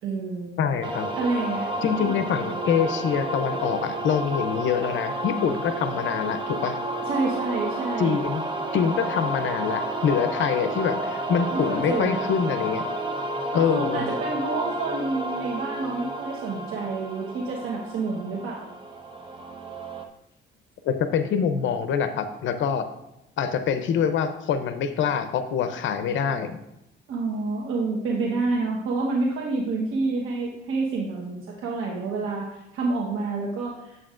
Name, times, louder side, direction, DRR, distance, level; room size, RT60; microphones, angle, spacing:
voice 1, 0.0-0.6 1.2-1.7 2.0-2.1 7.1-8.2 11.5-12.2 13.5-18.7 27.1-34.0, right 3 dB, 85° right, -2 dB, 1.2 m, -28 dB
voice 2, 0.6-1.1 1.8-6.8 8.0-8.4 8.7-12.9 13.5-14.1 20.8-22.9 23.4-26.6, left 7 dB, 75° left, 8 dB, 0.6 m, -25 dB
sound 1, 0.8-20.0, right 1 dB, 25° right, 1.0 m, -31 dB
9.9 x 7.7 x 2.5 m, 0.85 s
cardioid pair, 90°, 20 cm